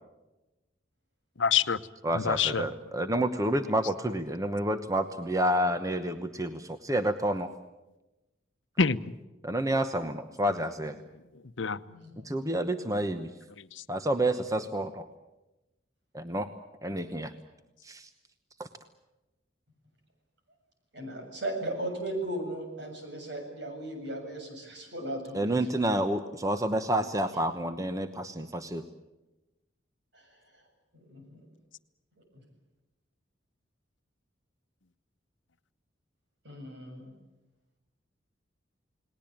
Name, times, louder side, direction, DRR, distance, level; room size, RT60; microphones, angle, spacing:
voice 1, 1.4-1.8 2.1-2.6 8.8-9.1 11.6-11.8 13.6-13.8, left 6 dB, 80° left, 12 dB, 0.9 m, -26 dB
voice 2, 2.0-7.5 9.4-10.9 12.2-13.3 13.9-15.0 16.1-16.5 16.8-17.3 17.8-18.1 18.6-18.7 25.3-28.8, right 1 dB, 20° right, 8 dB, 1.0 m, -29 dB
voice 3, 11.8-12.3 20.9-25.5 30.1-30.6 30.9-31.5 32.3-32.4 36.4-37.1, right 1 dB, 65° right, 3 dB, 7.4 m, -37 dB
30.0 x 19.5 x 8.8 m, 1.0 s
head